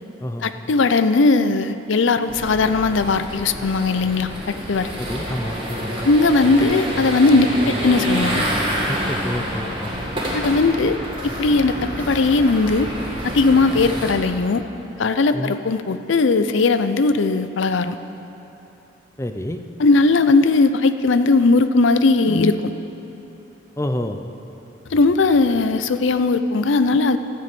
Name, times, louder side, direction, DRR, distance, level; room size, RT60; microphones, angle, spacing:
voice 1, 0.4-4.9 6.0-8.5 10.3-11.0 11.4-12.9 13.2-14.6 15.0-18.0 19.8-22.6 24.9-27.2, left 3 dB, 75° left, 11 dB, 0.5 m, -18 dB
sound 1, 2.3-14.1, equal, 25° right, 1.8 m, -28 dB
voice 2, 5.0-6.0 8.9-9.9 15.3-15.5 19.2-19.6 23.8-24.2, left 1 dB, 15° left, 7 dB, 0.5 m, -28 dB
13.0 x 6.7 x 8.3 m, 3.0 s
head